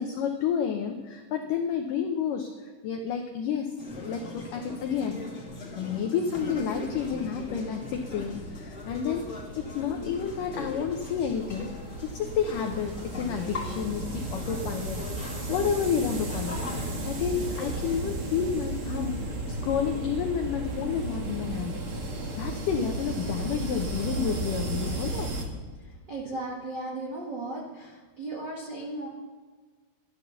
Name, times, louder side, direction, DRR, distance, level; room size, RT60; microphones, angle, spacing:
voice 1, 0.0-3.7 4.0-5.2 5.8-9.3 9.6-11.7 12.0-16.6 17.1-19.2 19.5-21.7 22.4-25.3, left 7 dB, 85° left, 4 dB, 1.9 m, -30 dB
sound 1, 3.8-18.0, left 3 dB, 25° left, 1.5 m, -40 dB
sound 2, 6.4-25.4, right 2 dB, 55° right, 1.5 m, -35 dB
voice 2, 26.1-29.1, right 2 dB, 80° right, -4 dB, 0.9 m, -36 dB
13.5 x 11.5 x 6.8 m, 1.5 s
omnidirectional pair, 5.1 m